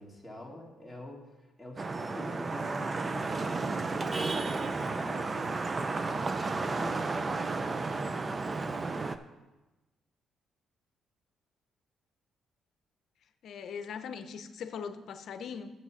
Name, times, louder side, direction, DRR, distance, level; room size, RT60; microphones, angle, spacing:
voice 1, 0.0-8.0, left 1 dB, 5° left, -2 dB, 2.1 m, -47 dB
Vehicle horn car horn honking / Traffic noise roadway noise, 1.8-9.2, right 3 dB, 30° right, 0.5 m, -32 dB
voice 2, 13.4-15.7, left 6 dB, 70° left, 9 dB, 0.7 m, -40 dB
7.3 x 7.2 x 5.7 m, 1.1 s
cardioid pair, 90°, 0 cm